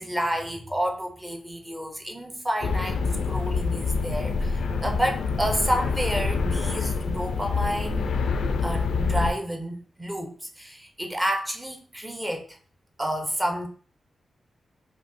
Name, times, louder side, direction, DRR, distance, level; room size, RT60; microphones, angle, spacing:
voice 1, 0.0-3.0 3.2-8.1 8.6-12.6 13.0-13.7, equal, 10° right, 0.5 m, -30 dB
sound 1, 2.6-9.3, left 4 dB, 85° left, 0.3 m, -26 dB
5.0 x 2.1 x 2.5 m
wide cardioid pair, 155°, 0 cm